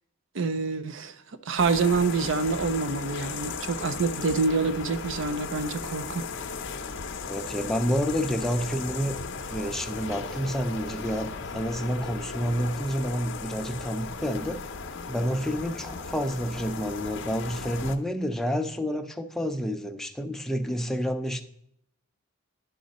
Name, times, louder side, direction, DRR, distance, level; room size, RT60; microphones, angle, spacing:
voice 1, 0.3-1.1 1.5-6.3, right 4 dB, 60° right, 0.5 m, -26 dB
sound 1, 1.6-18.0, left 4 dB, 60° left, 0.6 m, -36 dB
voice 2, 7.3-9.2 9.5-14.6 15.1-21.4, equal, ahead, 0.5 m, -29 dB
11.5 x 3.8 x 4.1 m
head